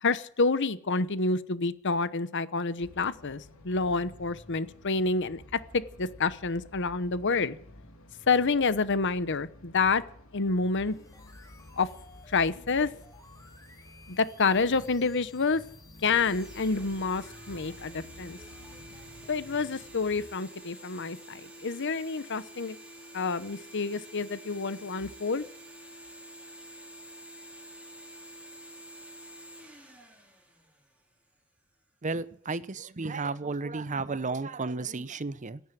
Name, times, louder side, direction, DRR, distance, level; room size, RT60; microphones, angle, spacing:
voice 1, 0.0-5.4 5.7-7.6 8.3-10.0 10.3-11.0 11.8-11.9 12.3-12.9 14.1-15.6 16.0-18.4 19.3-22.8 23.1-25.4, left 4 dB, 60° left, 0.9 m, -28 dB
sound 1, 2.8-20.2, left 1 dB, 85° left, 3.1 m, -52 dB
sound 2, 10.8-19.3, left 3 dB, 15° left, 2.5 m, -56 dB
sound 3, 16.1-31.3, right 1 dB, 5° right, 5.1 m, -48 dB
voice 2, 32.0-35.6, right 3 dB, 35° right, 0.7 m, -33 dB
16.5 x 9.4 x 9.3 m
head